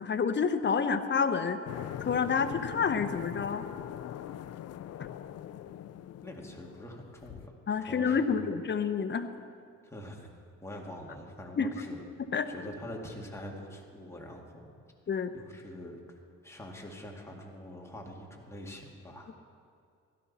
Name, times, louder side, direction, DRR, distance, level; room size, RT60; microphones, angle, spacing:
voice 1, 0.0-1.6 2.0-3.6 5.0-5.1 7.7-9.3 11.6-11.7 12.3-12.5 15.1-15.3, left 6 dB, 35° left, 9 dB, 0.9 m, -28 dB
sound 1, 1.7-7.5, left 11 dB, 55° left, 0.5 m, -42 dB
voice 2, 6.2-7.5 7.8-8.5 9.8-10.3 10.6-12.0 12.5-14.6 15.3-16.2 16.4-19.4, left 1 dB, 10° left, -1 dB, 2.1 m, -44 dB
16.0 x 13.0 x 4.2 m, 2.3 s
cardioid pair, 90°, 30 cm